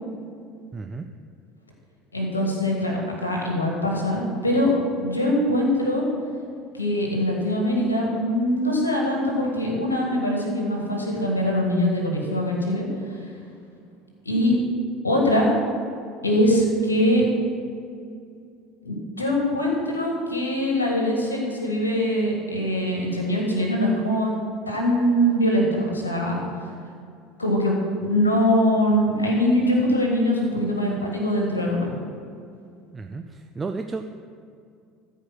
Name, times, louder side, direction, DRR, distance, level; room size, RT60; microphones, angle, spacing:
voice 1, 0.7-1.1 32.9-34.1, right 3 dB, 25° right, 6 dB, 0.5 m, -33 dB
voice 2, 2.1-4.7 5.0-6.0 6.8-12.8 14.2-14.5 15.0-15.5 16.2-17.2 18.8-24.3 24.7-26.4 27.4-32.0, equal, 90° left, -1 dB, 1.7 m, -22 dB
14.0 x 4.7 x 6.1 m, 2.4 s
figure-of-eight pair, 70°, 0 cm